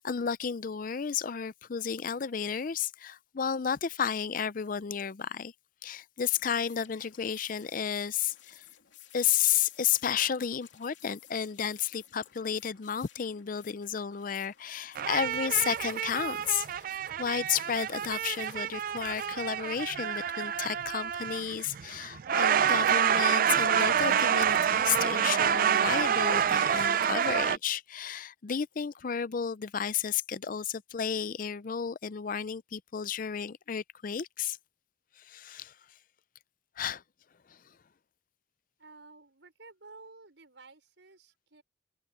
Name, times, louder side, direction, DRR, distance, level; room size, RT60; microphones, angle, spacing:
voice 1, 0.0-5.5 5.8-8.6 9.1-16.7 17.2-34.6 35.2-35.7 36.8-37.0 37.5-37.6, left 8 dB, 45° left, 0.5 m, -32 dB
sound 1, 6.2-19.3, left 12 dB, 90° left, 3.0 m, -55 dB
sound 2, 15.0-27.6, right 8 dB, 50° right, 0.3 m, -27 dB
voice 2, 38.8-41.6, right 3 dB, 80° right, 5.6 m, -53 dB
head